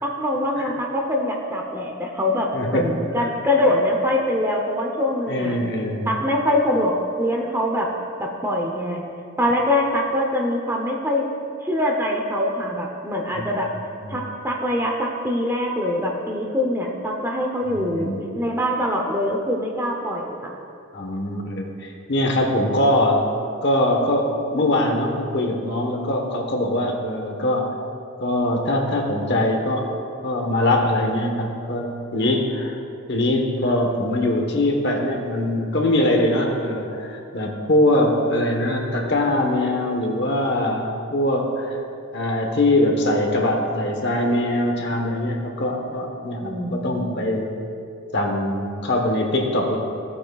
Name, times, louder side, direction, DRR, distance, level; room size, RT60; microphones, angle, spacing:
voice 1, 0.0-5.6 6.1-7.9 8.2-9.0 9.4-11.3 11.6-13.7 14.1-20.5 46.4-47.2, left 1 dB, 10° right, 0 dB, 0.7 m, -23 dB
voice 2, 2.5-3.3 5.3-6.1 13.3-13.5 14.0-14.2 17.7-18.2 20.9-23.3 23.6-27.7 28.2-29.9 30.2-32.7 33.1-41.8 42.1-47.5 48.1-49.8, left 1 dB, 50° left, 1 dB, 1.1 m, -22 dB
15.5 x 8.6 x 2.3 m, 2.6 s
head